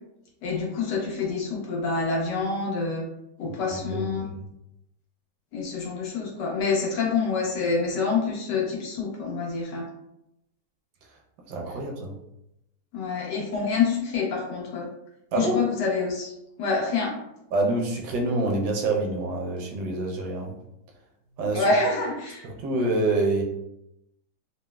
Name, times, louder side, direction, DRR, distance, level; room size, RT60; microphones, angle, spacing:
voice 1, 0.4-3.0 3.4-4.2 5.5-9.8 12.9-14.9 15.3-16.3 16.6-17.1 21.5-22.4, left 4 dB, 90° left, -2 dB, 1.5 m, -27 dB
voice 2, 3.9-4.2 11.5-12.1 15.3-15.6 17.5-20.5 21.4-21.7 22.4-23.4, right 2 dB, 75° right, 0 dB, 1.2 m, -26 dB
3.9 x 2.0 x 2.2 m, 0.85 s
omnidirectional pair, 1.8 m